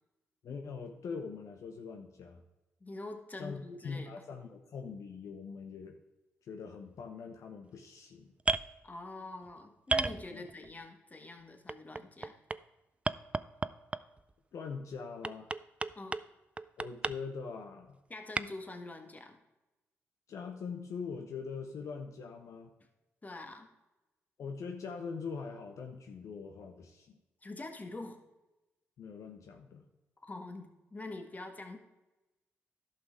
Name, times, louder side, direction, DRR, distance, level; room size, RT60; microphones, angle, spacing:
voice 1, 0.4-2.4 3.4-6.0 6.4-8.3 10.3-10.5 14.5-15.5 16.8-18.0 20.3-22.7 24.4-27.2 29.0-29.8, left 5 dB, 70° left, 4 dB, 0.8 m, -42 dB
voice 2, 2.8-4.1 8.8-12.4 15.9-16.2 18.1-19.4 23.2-23.7 27.4-28.2 30.2-31.8, left 2 dB, 30° left, 5 dB, 1.7 m, -45 dB
sound 1, 8.4-8.7 9.9-10.7 11.7-12.6 13.1-14.2 15.2-16.3 16.6-17.2 18.4-18.5, right 3 dB, 20° right, 0.4 m, -32 dB
11.0 x 5.9 x 4.7 m, 1.0 s
supercardioid pair, 50°, 6 cm